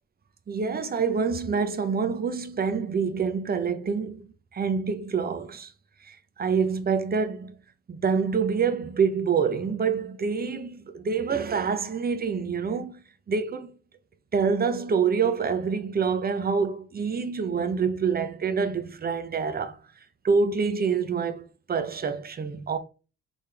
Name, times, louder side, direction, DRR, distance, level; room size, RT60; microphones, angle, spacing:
voice 1, 0.5-5.7 6.0-7.5 7.9-13.0 13.3-13.7 14.3-19.8 20.2-22.8, right 5 dB, 30° right, 0.7 m, -26 dB
3.9 x 3.5 x 3.3 m
cardioid pair, 90°, 30 cm